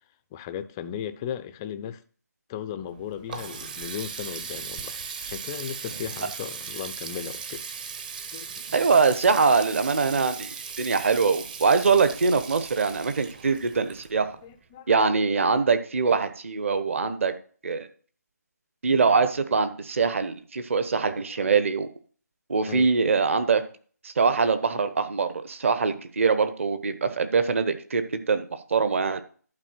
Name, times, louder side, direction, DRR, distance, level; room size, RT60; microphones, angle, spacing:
voice 1, 0.3-2.0 2.5-7.6 8.3-8.6 14.4-14.9 21.0-21.5 22.6-22.9 24.7-24.8, left 9 dB, 10° left, 0.4 m, -36 dB
Water tap faucet, 2.9-14.5, right 6 dB, 30° right, 0.8 m, -38 dB
voice 2, 8.7-14.3 14.9-17.3 17.6-17.9 18.8-21.9 22.5-23.6 24.0-29.2, right 5 dB, 45° right, 1.2 m, -23 dB
11.5 x 4.6 x 7.6 m
figure-of-eight pair, 150°, 9 cm